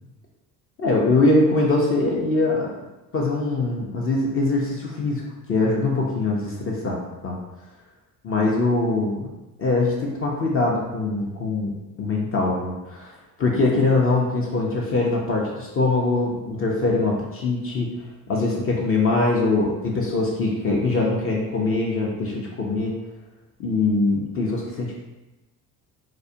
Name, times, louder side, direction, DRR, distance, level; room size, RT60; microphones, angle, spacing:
voice 1, 0.8-2.7 3.1-5.2 5.5-7.0 7.2-7.4 8.2-9.3 9.6-17.9 18.3-23.0 23.6-24.9, left 2 dB, 30° left, -2 dB, 0.4 m, -22 dB
2.4 x 2.1 x 2.5 m, 1.0 s
hypercardioid pair, 65°, 47 cm